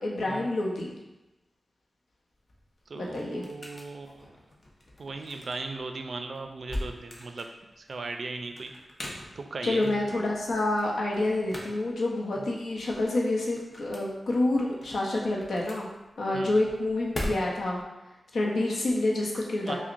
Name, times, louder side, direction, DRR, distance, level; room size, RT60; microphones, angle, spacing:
voice 1, 0.0-0.9 3.0-3.4 9.6-15.9 16.2-17.8 18.3-19.8, left 2 dB, 85° left, -2 dB, 0.7 m, -28 dB
sound 1, 2.3-17.8, left 1 dB, 45° left, 0.7 m, -42 dB
voice 2, 2.9-4.3 5.0-7.5 7.8-8.7 9.4-10.1 12.4-12.5 16.3-16.6 19.6-19.8, right 3 dB, 65° right, 5 dB, 0.3 m, -37 dB
5.8 x 2.0 x 2.5 m, 1.0 s
wide cardioid pair, 85°, 0 cm